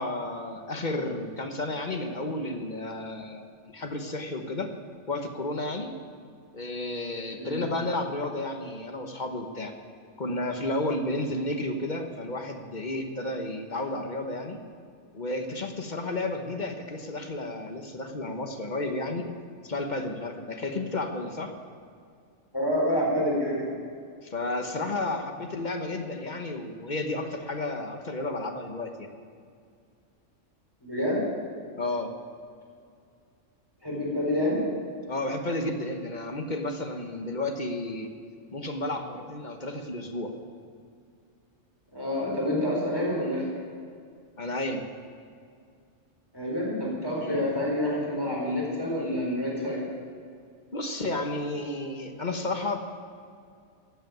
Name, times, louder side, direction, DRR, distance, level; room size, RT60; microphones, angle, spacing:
voice 1, 0.0-4.7 5.1-5.9 6.5-9.7 10.2-14.6 15.1-19.3 19.6-21.5 24.2-29.1 31.8-32.1 35.1-38.1 38.5-40.3 44.4-44.8 47.2-47.4 50.7-52.8, left 2 dB, 40° left, 5 dB, 1.2 m, -32 dB
voice 2, 7.3-7.7 22.5-23.7 30.8-31.2 33.8-34.6 41.9-43.5 46.3-49.8, left 1 dB, 20° left, -4 dB, 4.3 m, -28 dB
14.5 x 8.2 x 9.3 m, 2.3 s
omnidirectional pair, 1.3 m